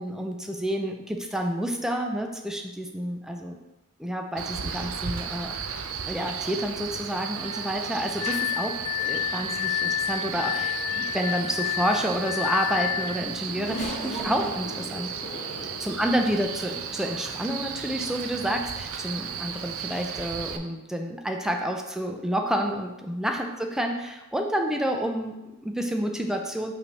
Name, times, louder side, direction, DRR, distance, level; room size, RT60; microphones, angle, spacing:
voice 1, 0.0-3.6 4.0-5.5 6.1-15.1 15.8-26.7, equal, ahead, 2 dB, 0.5 m, -29 dB
Male speech man speaking, 4.4-20.6, right 7 dB, 65° right, 0.5 m, -35 dB
Glass, 8.2-13.2, left 12 dB, 85° left, 0.3 m, -29 dB
Race car auto racing / Accelerating revving vroom, 12.9-17.2 17.9-18.0 19.1-19.3, equal, 35° left, 1.5 m, -38 dB
5.7 x 3.4 x 5.3 m, 0.98 s
head